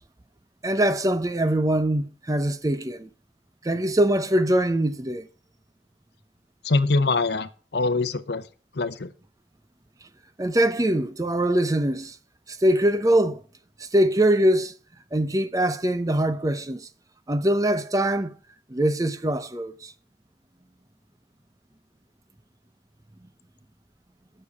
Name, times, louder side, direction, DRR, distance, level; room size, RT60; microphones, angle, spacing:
voice 1, 0.6-3.1 3.6-5.3 10.4-12.2 12.5-13.4 13.8-14.7 15.1-16.9 17.3-18.3 18.7-19.9, right 1 dB, 20° right, 0.6 m, -23 dB
voice 2, 6.6-8.4 8.7-9.1, left 3 dB, 60° left, 0.8 m, -24 dB
9.4 x 6.6 x 8.4 m
head